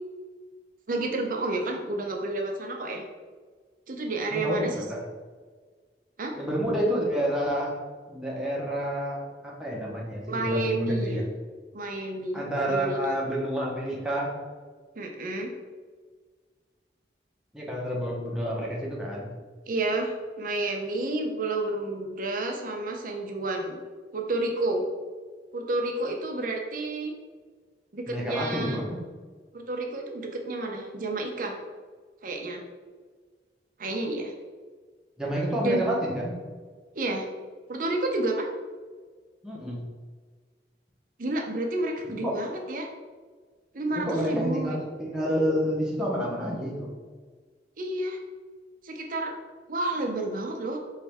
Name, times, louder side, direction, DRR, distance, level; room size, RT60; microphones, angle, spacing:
voice 1, 0.9-3.0 3.9-4.8 6.2-6.4 10.3-11.2 11.7-13.1 15.0-15.5 19.7-23.8 24.1-24.8 25.5-27.1 27.9-28.8 29.5-31.6 32.2-32.6 33.8-34.3 35.6-36.0 37.0-37.3 37.7-38.5 41.2-42.9 43.7-44.7 47.8-48.2 48.8-49.4 49.7-50.8, right 2 dB, 50° right, 2 dB, 0.7 m, -30 dB
voice 2, 4.3-5.0 6.4-7.8 8.1-11.2 12.3-14.4 17.5-19.3 28.1-29.0 35.2-36.3 39.4-39.8 42.2-42.4 43.9-46.9, equal, 5° right, -4 dB, 0.9 m, -29 dB
4.5 x 3.2 x 3.4 m, 1.5 s
head